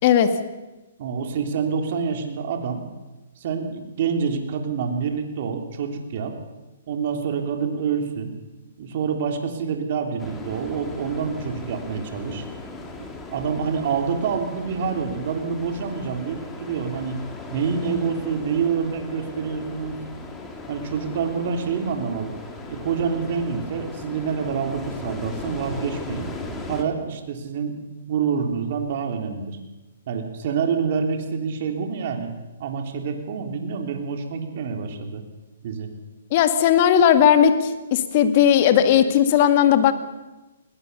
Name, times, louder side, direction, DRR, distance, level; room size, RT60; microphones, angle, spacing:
voice 1, 0.0-0.3 36.3-39.9, left 9 dB, 45° left, 9 dB, 2.0 m, -17 dB
voice 2, 1.0-2.8 3.4-6.3 6.9-8.3 8.8-12.4 13.0-17.2 17.5-20.0 20.7-22.3 22.7-26.3 26.7-27.7 28.1-29.6 30.1-32.3 32.6-35.2 35.6-35.9, right 6 dB, 50° right, 4 dB, 3.5 m, -27 dB
sound 1, 10.2-26.8, left 3 dB, 10° left, 2.8 m, -37 dB
20.5 x 18.5 x 6.9 m, 1.1 s
hypercardioid pair, 140°, 0 cm